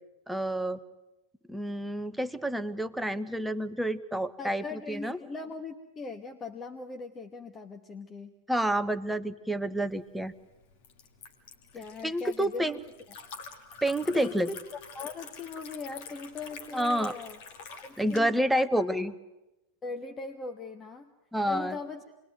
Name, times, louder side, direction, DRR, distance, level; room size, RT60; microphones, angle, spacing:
voice 1, 0.3-0.8 1.5-5.2 8.5-10.3 12.0-12.8 13.8-14.5 16.7-17.1 18.0-19.1 21.3-21.8, right 1 dB, 5° right, 10 dB, 1.1 m, -29 dB
voice 2, 4.4-8.3 11.7-12.8 14.1-14.5 14.9-17.4 17.8-18.9 19.8-21.1 21.4-22.0, left 4 dB, 20° left, 5 dB, 1.5 m, -40 dB
Liquid, 9.8-18.2, left 6 dB, 50° left, 2.5 m, -47 dB
27.5 x 21.5 x 9.2 m, 0.98 s
figure-of-eight pair, 90°, 0 cm